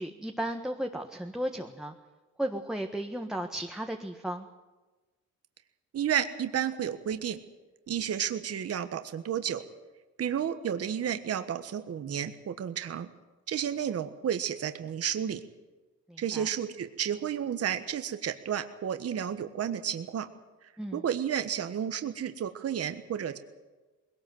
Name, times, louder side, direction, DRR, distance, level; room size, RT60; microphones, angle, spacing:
voice 1, 0.0-1.9 2.4-4.5 16.1-16.5 20.8-21.0, right 1 dB, ahead, 2 dB, 1.5 m, -35 dB
voice 2, 5.9-7.4 7.9-9.6 10.2-13.1 13.5-15.4 16.2-20.3 20.9-23.4, right 9 dB, 50° right, 9 dB, 1.4 m, -31 dB
21.0 x 18.0 x 7.8 m, 1.2 s
cardioid pair, 90°, 30 cm